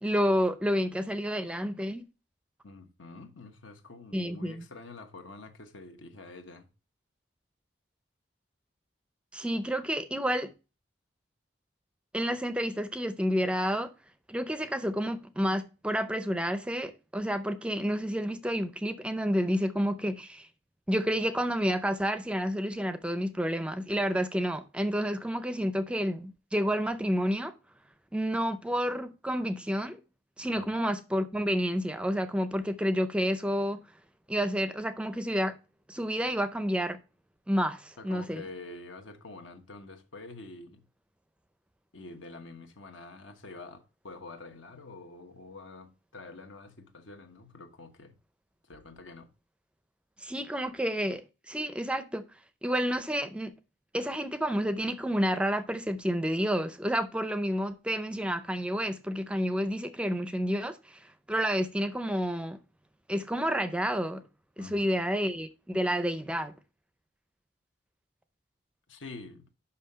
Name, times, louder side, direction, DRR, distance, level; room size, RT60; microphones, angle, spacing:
voice 1, 0.0-2.0 4.1-4.7 9.3-10.5 12.1-13.9 14.3-20.5 20.9-27.5 28.1-30.0 30.4-33.8 34.3-35.6 35.9-37.0 37.5-38.5 50.2-51.2 51.5-52.3 52.6-53.5 53.9-62.6 63.1-64.2 64.6-66.5, equal, 5° right, 0.4 m, -30 dB
voice 2, 2.6-6.7 30.5-30.7 38.0-40.8 41.9-48.1 48.7-49.3 64.6-65.1 68.9-69.5, left 3 dB, 85° left, 1.2 m, -47 dB
5.6 x 5.6 x 5.4 m
head